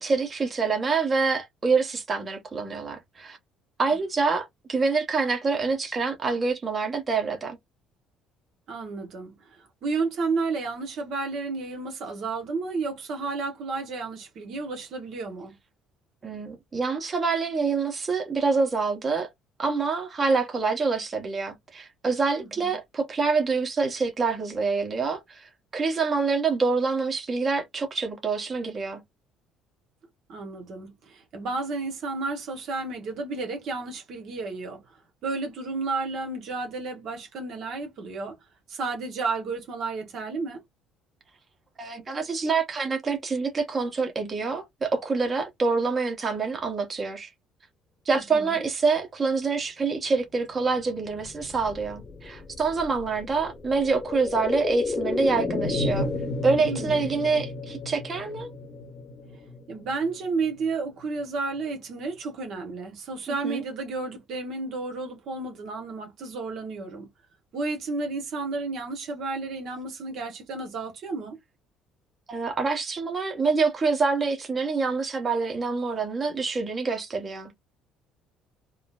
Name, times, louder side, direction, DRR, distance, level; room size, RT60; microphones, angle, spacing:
voice 1, 0.0-3.4 3.8-7.6 16.2-19.3 19.6-29.0 41.8-47.3 48.0-56.1 56.4-58.5 63.3-63.6 72.3-77.5, right 4 dB, 30° right, 1.0 m, -26 dB
voice 2, 8.7-15.5 22.4-22.8 30.3-34.8 35.2-38.4 38.7-40.6 48.1-48.7 56.7-57.0 59.7-67.1 67.5-71.4, right 3 dB, 65° right, 1.1 m, -32 dB
sound 1, 50.9-60.7 61.0-61.1, left 3 dB, 35° left, 0.9 m, -33 dB
3.7 x 2.0 x 2.4 m
supercardioid pair, 90°, 0 cm